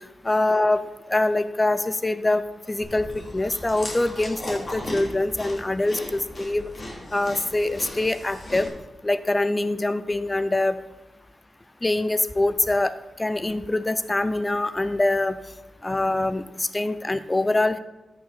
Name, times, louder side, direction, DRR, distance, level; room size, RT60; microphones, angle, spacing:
voice 1, 0.2-0.8 1.1-2.4 2.7-6.7 7.1-8.7 9.0-10.8 11.8-12.9 13.2-15.4 15.8-17.8, left 2 dB, 25° left, 13 dB, 0.5 m, -24 dB
Chewing mastication, 2.8-8.7, left 1 dB, 45° left, 3.0 m, -37 dB
13.0 x 5.7 x 4.2 m, 1.1 s
cardioid pair, 55°, 0 cm